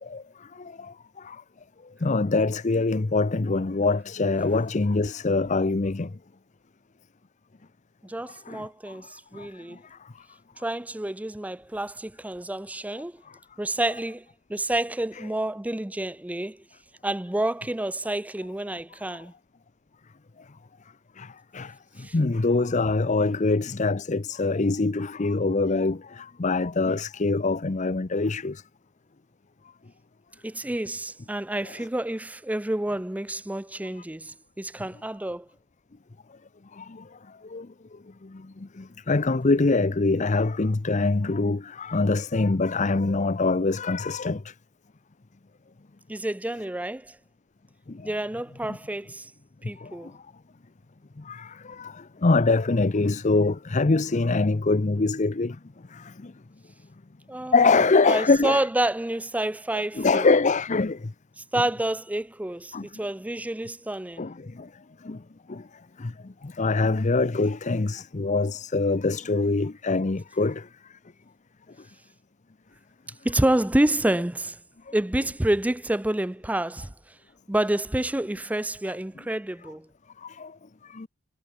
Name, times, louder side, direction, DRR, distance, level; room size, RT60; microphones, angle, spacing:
voice 1, 0.5-1.4 2.0-6.1 8.5-8.7 9.3-9.5 9.9-10.0 15.2-15.3 21.2-28.6 31.6-31.9 36.7-37.0 37.4-37.7 38.2-44.5 47.9-48.1 48.7-48.8 49.8-50.1 51.2-55.6 55.9-56.3 57.5-58.7 59.7-61.1 62.7-62.9 64.2-64.7 65.0-65.2 65.5-65.6 66.0-70.7 78.9-79.0 80.2-80.5 80.9-81.1, left 3 dB, 35° left, 0.6 m, -24 dB
voice 2, 8.0-9.8 10.6-13.1 13.6-14.2 14.5-16.6 17.0-19.3 22.0-22.1 30.4-35.5 46.1-47.1 48.0-49.3 49.6-50.1 57.3-60.3 61.5-64.3 73.2-74.6 74.9-76.9 77.5-79.9, right 1 dB, 5° right, 0.4 m, -28 dB
head